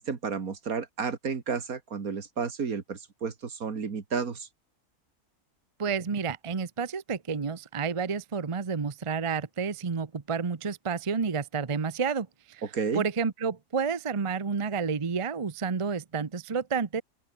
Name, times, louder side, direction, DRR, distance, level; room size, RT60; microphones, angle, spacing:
voice 1, 0.0-4.5 12.6-13.0, right 5 dB, 70° right, 2.4 m, -32 dB
voice 2, 5.8-12.6 12.9-17.0, right 5 dB, 25° right, 0.7 m, -30 dB
open air
omnidirectional pair, 1.6 m